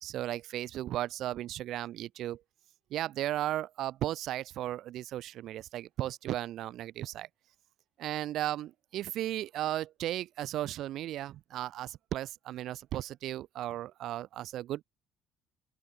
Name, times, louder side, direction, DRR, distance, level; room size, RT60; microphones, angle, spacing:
voice 1, 0.0-2.4 2.9-7.3 8.0-14.8, right 13 dB, 55° right, 0.4 m, -35 dB
open air
cardioid pair, 155°, 0 cm